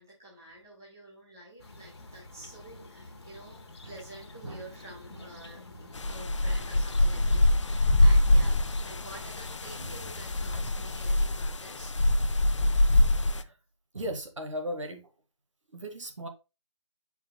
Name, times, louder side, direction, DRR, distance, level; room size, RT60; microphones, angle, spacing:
voice 1, 0.0-5.6 6.0-8.6 8.8-11.9, right 1 dB, 5° right, 0.5 m, -49 dB
sound 1, 1.6-11.1, left 2 dB, 60° left, 1.2 m, -47 dB
sound 2, 5.9-13.4, left 1 dB, 75° left, 0.6 m, -24 dB
voice 2, 13.9-15.0 15.7-16.3, equal, 80° right, 1.8 m, -39 dB
8.8 x 4.7 x 2.3 m
figure-of-eight pair, 180°, 16 cm